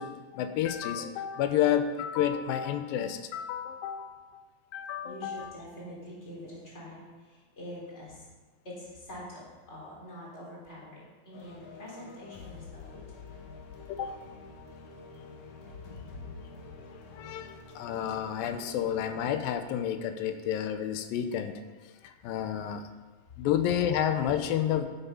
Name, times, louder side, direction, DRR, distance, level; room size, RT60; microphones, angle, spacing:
voice 1, 0.0-4.4 4.7-5.5 13.9-14.1 17.1-21.6 22.2-22.8 23.4-24.9, left 10 dB, 90° left, 9 dB, 2.5 m, -30 dB
voice 2, 5.0-8.3 8.6-13.2, equal, 20° left, -5 dB, 3.7 m, -45 dB
sound 1, 11.3-19.3, left 4 dB, 65° left, 2.5 m, -47 dB
11.5 x 8.0 x 5.5 m, 1.3 s
omnidirectional pair, 4.0 m